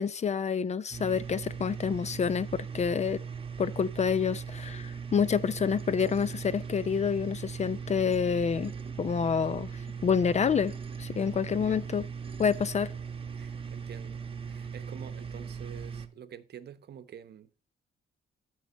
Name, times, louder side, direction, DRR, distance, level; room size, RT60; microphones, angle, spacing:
voice 1, 0.0-3.2 3.6-8.7 9.0-9.7 10.0-10.7 11.0-12.1 12.4-12.9, left 6 dB, 35° left, 0.5 m, -28 dB
sound 1, 0.9-16.1, right 6 dB, 25° right, 1.1 m, -39 dB
voice 2, 11.5-11.9 13.3-14.2 14.5-17.5, right 8 dB, 55° right, 0.9 m, -48 dB
12.5 x 4.7 x 4.1 m
cardioid pair, 90°, 20 cm